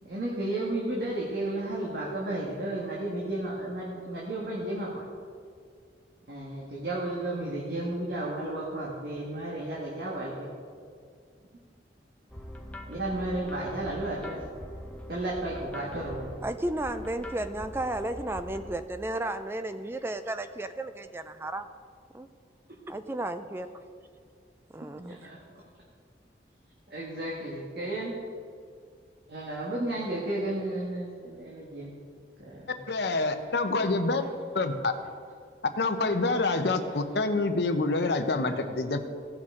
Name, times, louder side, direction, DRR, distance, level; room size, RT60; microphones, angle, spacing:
voice 1, 0.0-5.0 6.3-10.5 12.9-14.4 15.1-16.3 25.0-25.4 26.9-28.1 29.3-32.0 32.4-32.8 33.4-33.6 34.2-34.3 36.2-36.3 36.8-37.0, right 1 dB, 65° right, -5 dB, 1.5 m, -33 dB
sound 1, 12.3-18.7, equal, 10° left, 0.7 m, -43 dB
voice 2, 16.4-21.7 22.1-22.3 22.9-23.7 24.7-25.3, right 1 dB, 15° right, 9 dB, 0.3 m, -33 dB
voice 3, 32.9-34.2 34.5-34.9 35.8-39.0, left 3 dB, 75° left, 7 dB, 0.8 m, -27 dB
16.5 x 6.1 x 3.7 m, 2.2 s
head